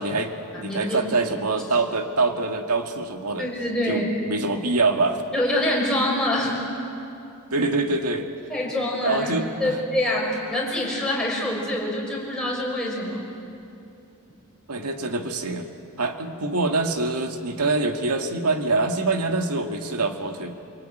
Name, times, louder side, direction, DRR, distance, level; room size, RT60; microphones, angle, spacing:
voice 1, 0.0-3.5 3.9-5.2 7.5-8.3 9.0-9.8 14.7-15.7 16.0-20.6, right 3 dB, 90° right, 4 dB, 2.0 m, -25 dB
voice 2, 0.5-1.0 3.4-4.1 5.3-6.6 8.5-9.3 9.6-13.2, left 1 dB, 5° left, -4 dB, 6.2 m, -25 dB
24.5 x 24.0 x 9.2 m, 2.6 s
head